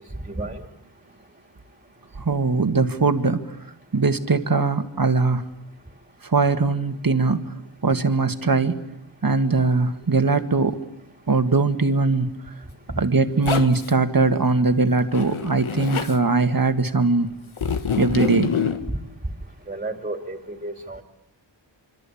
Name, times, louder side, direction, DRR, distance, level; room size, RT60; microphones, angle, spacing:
voice 1, 0.3-0.6 12.9-13.0 18.9-19.0 19.7-21.0, right 2 dB, 15° right, 5 dB, 2.8 m, -31 dB
voice 2, 2.3-3.4 3.9-5.4 6.3-7.4 7.8-8.8 9.2-10.8 11.3-12.3 13.0-17.3 18.0-18.5, right 3 dB, 45° right, 8 dB, 1.9 m, -20 dB
Zipper (clothing), 13.5-13.9 15.1-16.2 17.6-18.8, left 6 dB, 85° left, 1.6 m, -26 dB
26.0 x 25.0 x 8.6 m, 0.82 s
wide cardioid pair, 80°, 47 cm